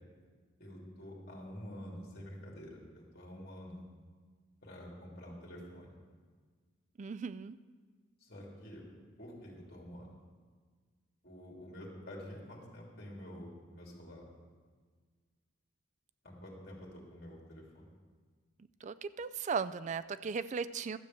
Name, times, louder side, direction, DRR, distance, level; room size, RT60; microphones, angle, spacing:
voice 1, 0.6-3.8 4.6-5.9 8.2-8.9 9.2-10.1 11.2-14.2 16.2-17.9, equal, 50° left, -2 dB, 3.2 m, -48 dB
voice 2, 7.0-7.6 18.8-21.0, right 5 dB, 35° right, 14 dB, 0.3 m, -37 dB
12.5 x 7.0 x 7.7 m, 1.6 s
head